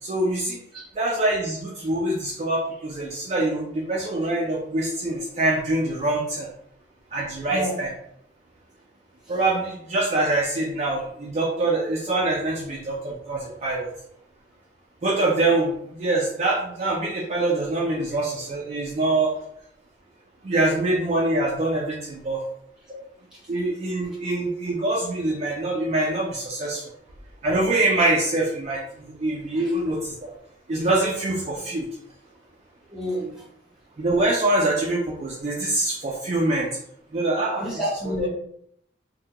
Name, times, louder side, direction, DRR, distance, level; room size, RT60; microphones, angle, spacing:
voice 1, 0.0-0.6 1.0-6.5 7.1-7.9 9.3-13.9 15.0-19.3 20.4-22.4 23.5-26.8 27.4-30.3 30.7-31.9 34.0-36.7 37.1-37.7, right 2 dB, 35° right, -3 dB, 0.3 m, -24 dB
voice 2, 32.9-33.3 37.6-38.3, equal, 5° right, -7 dB, 0.9 m, -28 dB
2.2 x 2.1 x 2.8 m, 0.70 s
head